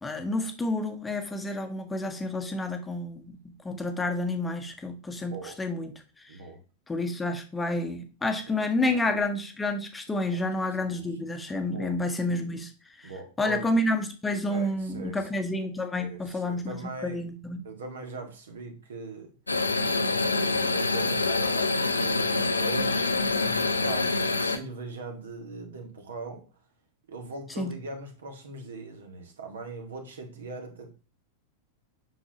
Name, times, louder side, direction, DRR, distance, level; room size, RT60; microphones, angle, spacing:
voice 1, 0.0-3.4 3.6-5.9 6.2-6.4 6.9-12.7 13.0-13.1 13.4-17.6 27.6-27.7, left 2 dB, 10° left, 6 dB, 1.0 m, -29 dB
voice 2, 6.3-6.6 8.5-9.2 10.3-11.0 11.6-11.9 13.0-13.7 14.5-15.3 16.0-17.2 17.6-19.3 20.2-26.4 27.1-30.9, right 3 dB, 65° right, 4 dB, 1.7 m, -40 dB
sound 1, 19.5-24.6, left 3 dB, 80° left, 0.7 m, -26 dB
8.1 x 5.8 x 2.9 m, 0.34 s
figure-of-eight pair, 90°, 0 cm